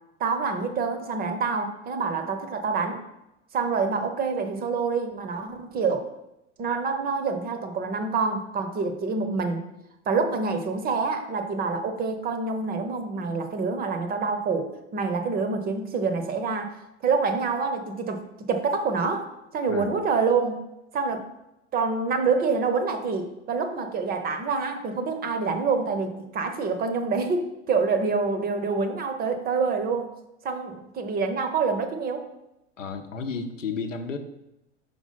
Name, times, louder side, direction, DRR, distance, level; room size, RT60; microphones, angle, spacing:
voice 1, 0.2-3.0 3.5-6.1 6.6-9.6 10.1-16.7 17.0-20.6 20.9-21.3 21.7-30.1 30.4-32.2, right 4 dB, 25° right, 8 dB, 0.7 m, -26 dB
voice 2, 32.8-34.2, left 5 dB, 80° left, 7 dB, 0.7 m, -32 dB
5.2 x 4.7 x 4.0 m, 0.91 s
figure-of-eight pair, 85°, 37 cm